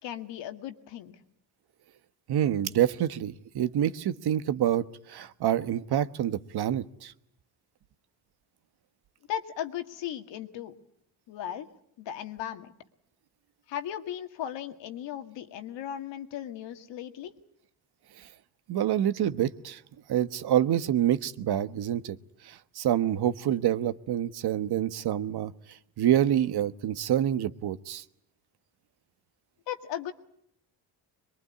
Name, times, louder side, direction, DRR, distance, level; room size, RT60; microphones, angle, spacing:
voice 1, 0.0-1.2 9.3-10.7 11.3-11.7 12.0-12.7 13.7-17.3 29.7-30.1, left 10 dB, 80° left, 7 dB, 2.1 m, -36 dB
voice 2, 2.3-7.1 18.7-19.8 20.1-22.2 22.4-25.5 26.0-28.0, right 11 dB, 60° right, 13 dB, 1.2 m, -27 dB
23.0 x 22.5 x 9.8 m, 0.72 s
cardioid pair, 100°, 43 cm